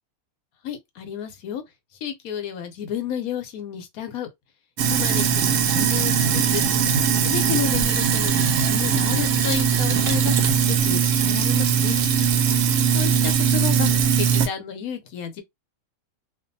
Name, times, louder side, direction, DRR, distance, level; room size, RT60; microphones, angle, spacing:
voice 1, 0.6-1.6 2.0-4.3 4.9-6.6 7.2-12.0 12.9-13.9 14.2-15.4, left 9 dB, 80° left, 1.1 m, -31 dB
Sink (filling or washing), 4.8-14.5, right 7 dB, 70° right, 0.9 m, -20 dB
2.5 x 2.3 x 2.6 m
omnidirectional pair, 1.5 m